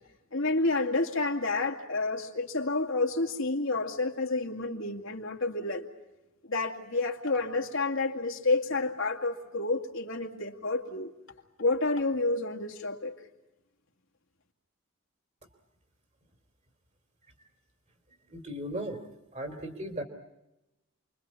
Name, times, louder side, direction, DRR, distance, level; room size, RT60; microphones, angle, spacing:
voice 1, 0.3-5.8 6.4-11.1 11.6-13.2, left 3 dB, 60° left, 2 dB, 2.5 m, -29 dB
voice 2, 18.3-19.0 19.3-20.0, right 1 dB, 30° right, 7 dB, 3.0 m, -36 dB
29.0 x 23.0 x 8.5 m, 0.95 s
head